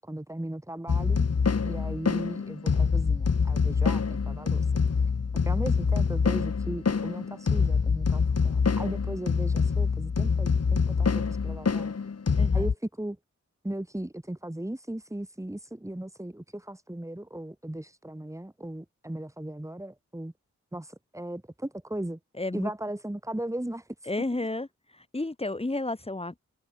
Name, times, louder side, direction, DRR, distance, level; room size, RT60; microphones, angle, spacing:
voice 1, 0.0-1.3 1.6-4.6 5.5-11.9 12.5-13.2 13.6-20.3 20.7-22.2 22.5-23.8, right 1 dB, 10° right, 7.3 m, -37 dB
sound 1, 0.9-12.7, left 5 dB, 55° left, 5.0 m, -25 dB
voice 2, 22.4-22.7 24.1-24.7 24.9-26.4, left 2 dB, 20° left, 3.8 m, -31 dB
wide cardioid pair, 115°, 29 cm